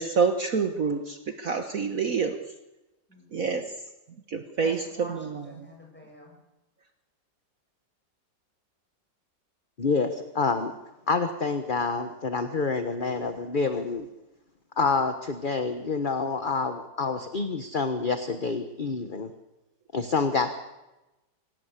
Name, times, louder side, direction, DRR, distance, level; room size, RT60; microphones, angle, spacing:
voice 1, 0.0-2.4 3.3-3.6 4.3-4.8, right 5 dB, 50° right, 6 dB, 1.7 m, -27 dB
voice 2, 3.1-3.7 4.6-6.4, equal, 5° left, 0 dB, 7.4 m, -46 dB
voice 3, 9.8-10.7 11.1-14.1 14.8-19.3 19.9-20.6, left 4 dB, 30° left, 8 dB, 1.3 m, -27 dB
26.0 x 17.5 x 8.3 m, 1.0 s
omnidirectional pair, 2.0 m